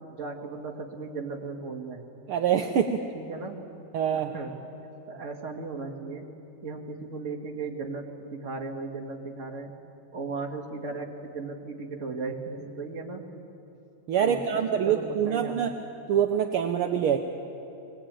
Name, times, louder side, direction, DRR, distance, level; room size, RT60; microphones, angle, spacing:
voice 1, 0.0-2.0 3.1-3.6 4.1-4.5 5.1-6.3 6.6-9.7 10.1-13.2 14.2-15.7, right 4 dB, 30° right, 1 dB, 1.8 m, -36 dB
voice 2, 2.3-3.0 3.9-4.3 14.1-15.7 16.1-17.2, right 8 dB, 70° right, 5 dB, 1.3 m, -25 dB
23.5 x 19.5 x 8.9 m, 2.8 s
omnidirectional pair, 3.4 m